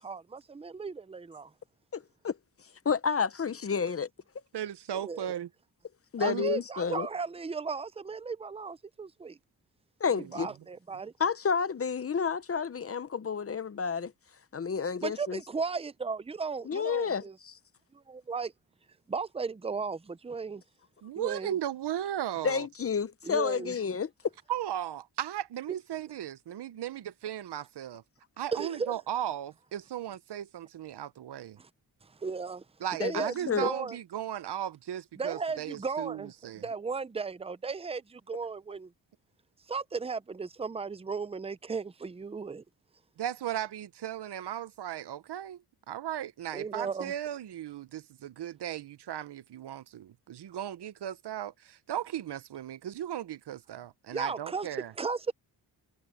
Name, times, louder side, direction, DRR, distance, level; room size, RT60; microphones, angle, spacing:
voice 1, 0.0-1.5 4.9-5.3 6.2-9.4 10.3-11.1 15.0-17.4 17.9-18.5 19.1-20.6 21.2-21.6 23.2-23.7 28.5-28.9 31.6-31.7 32.0-32.6 33.0-34.0 35.2-38.9 39.7-42.6 46.5-47.1 54.1-54.7 55.0-55.3, right 5 dB, 15° right, 0.5 m, -35 dB
voice 2, 1.9-2.4 2.8-4.1 6.1-7.1 10.0-10.5 11.2-14.1 14.5-15.4 16.6-17.6 22.4-24.1 33.0-33.7, left 6 dB, 35° left, 0.7 m, -30 dB
voice 3, 4.5-5.5 6.2-6.5 10.1-10.3 21.0-22.7 24.5-28.0 28.4-31.6 32.8-36.7 43.2-54.9, right 11 dB, 80° right, 0.9 m, -36 dB
wide cardioid pair, 130°, 40 cm